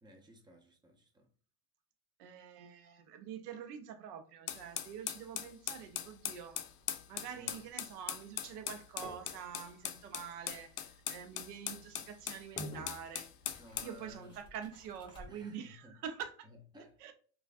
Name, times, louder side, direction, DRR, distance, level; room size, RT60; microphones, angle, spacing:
voice 1, 0.0-1.3 7.3-7.6 13.6-14.4 15.3-16.0 16.4-17.0, left 1 dB, 10° right, 0.5 m, -57 dB
voice 2, 2.2-6.6 7.1-13.3 13.8-16.5 17.0-17.1, right 8 dB, 85° right, 0.7 m, -46 dB
sound 1, 4.5-14.0, left 11 dB, 65° left, 0.5 m, -41 dB
sound 2, 5.8-15.5, equal, 10° left, 1.0 m, -54 dB
3.1 x 2.4 x 2.4 m
supercardioid pair, 105°, 45 cm